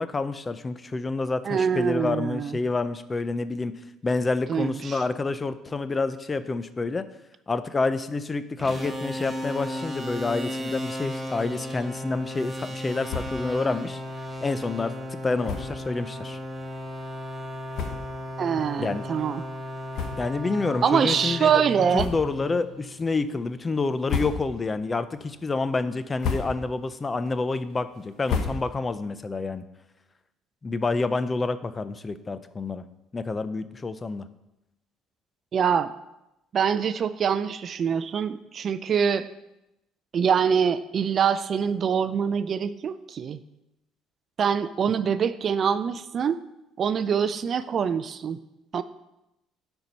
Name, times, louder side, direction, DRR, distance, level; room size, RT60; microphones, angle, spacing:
voice 1, 0.0-3.7 4.0-7.0 7.5-14.0 14.4-16.4 18.8-19.0 20.2-21.6 21.9-29.6 30.6-32.8 33.1-34.2, left 3 dB, 25° left, 13 dB, 0.5 m, -28 dB
voice 2, 1.5-2.6 4.5-5.0 18.4-19.4 20.8-22.1 35.5-35.9 36.5-39.3 40.1-43.4 44.4-46.4 46.8-48.4 48.7-48.8, right 7 dB, 45° right, 14 dB, 0.4 m, -24 dB
sound 1, 8.6-23.2, equal, 5° right, 1.7 m, -35 dB
sound 2, 13.0-13.5 13.9-14.0 14.3-14.4 15.4-15.8 16.6-16.7 17.4-17.5 17.7-18.3 18.8-18.9 19.9-20.6 20.9-21.1 21.9-22.5 22.9-23.4 23.9-24.7 25.1-25.6 26.0-26.8 27.2-29.0, left 5 dB, 65° left, 1.1 m, -33 dB
9.6 x 4.5 x 5.3 m, 0.91 s
cardioid pair, 100°, 0 cm